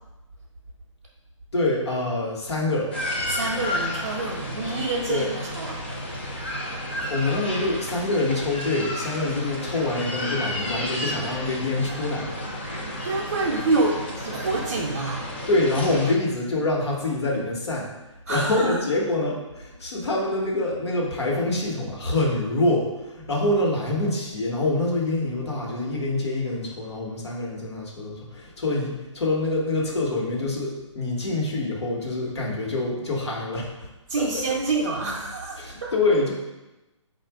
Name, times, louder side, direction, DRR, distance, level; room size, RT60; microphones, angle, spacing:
voice 1, 1.5-2.9 5.1-5.3 7.1-12.4 15.5-17.9 18.3-33.9 35.6-36.3, left 2 dB, 60° left, -2 dB, 1.2 m, -25 dB
sound 1, 2.9-16.2, left 1 dB, 20° left, 0.4 m, -32 dB
voice 2, 3.3-5.8 12.7-15.3 18.3-18.8 34.1-35.9, right 3 dB, 30° right, -7 dB, 0.5 m, -27 dB
4.4 x 2.5 x 4.6 m, 1.0 s
hypercardioid pair, 175°, 16 cm